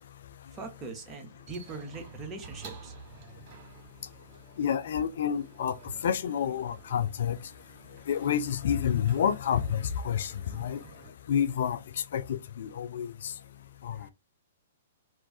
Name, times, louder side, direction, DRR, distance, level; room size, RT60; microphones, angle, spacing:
voice 1, 0.5-2.9 13.9-14.1, right 3 dB, 20° right, 0.7 m, -41 dB
sound 1, 0.8-11.1, right 5 dB, 45° right, 1.1 m, -52 dB
voice 2, 4.6-5.7 6.0-7.4 8.1-10.8 11.3-11.8 12.1-13.3 13.8-14.0, left 8 dB, 60° left, 0.3 m, -29 dB
2.4 x 2.3 x 2.2 m
figure-of-eight pair, 115°, 0 cm